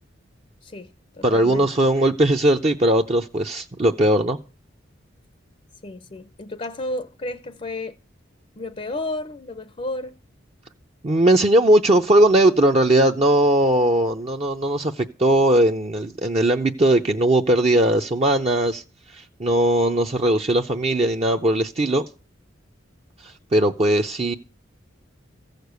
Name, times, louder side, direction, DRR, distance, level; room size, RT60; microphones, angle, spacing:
voice 1, 0.6-1.7 5.8-8.0 8.6-10.2, left 2 dB, 30° left, 0.6 m, -32 dB
voice 2, 1.2-4.4 11.0-18.8 19.1-22.0 23.2-24.3, right 1 dB, 30° right, 0.6 m, -19 dB
15.0 x 6.6 x 8.0 m
head